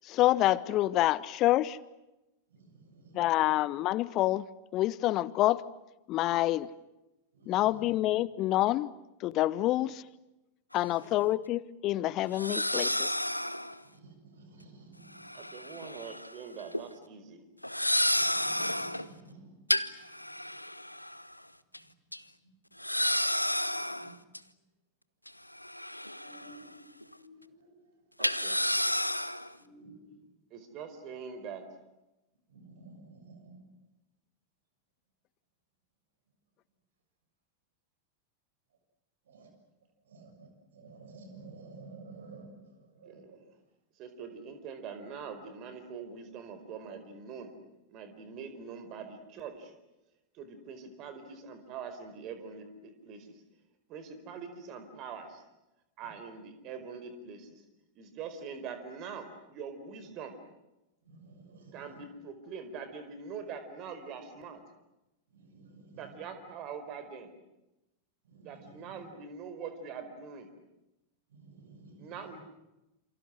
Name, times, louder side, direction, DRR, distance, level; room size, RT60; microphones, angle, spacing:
voice 1, 0.0-1.8 3.1-4.5 4.7-5.6 6.1-6.7 7.5-8.9 9.2-10.0 10.7-13.2, left 15 dB, 35° left, 20 dB, 0.8 m, -27 dB
voice 2, 2.5-3.3 7.3-7.6 13.9-15.3 18.1-19.5 24.0-24.1 26.2-27.8 29.6-30.1 32.5-33.6 39.3-39.5 40.1-43.2 61.1-61.8 65.3-66.0 68.3-69.0 71.3-72.1, right 3 dB, 65° right, 6 dB, 6.9 m, -52 dB
sound 1, 10.7-10.8 12.3-13.8 15.2-16.3 16.6-16.8 17.6-19.1 19.7-21.3 21.7-21.8 22.1-22.2 22.8-24.4 25.3-26.7 27.0-27.1 28.2-29.5, left 1 dB, 90° left, 0.8 m, -31 dB
voice 3, 15.3-17.4 28.2-28.6 30.5-31.7 43.0-43.4 44.0-47.5 47.9-49.7 50.3-53.4 53.9-55.4 56.0-57.6 57.9-60.4 61.7-64.6 65.9-67.3 68.4-70.5 72.0-72.4, right 6 dB, 40° right, 10 dB, 4.6 m, -43 dB
28.0 x 28.0 x 6.4 m, 0.96 s
figure-of-eight pair, 90°, 0 cm